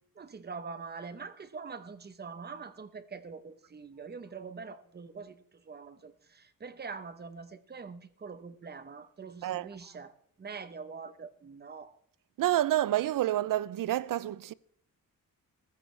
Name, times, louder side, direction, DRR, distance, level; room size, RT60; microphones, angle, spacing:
voice 1, 0.2-10.1 10.4-11.9, right 5 dB, 30° right, 0.9 m, -44 dB
voice 2, 12.4-14.5, right 13 dB, 65° right, 0.5 m, -28 dB
19.0 x 14.5 x 3.3 m
wide cardioid pair, 170°, 35 cm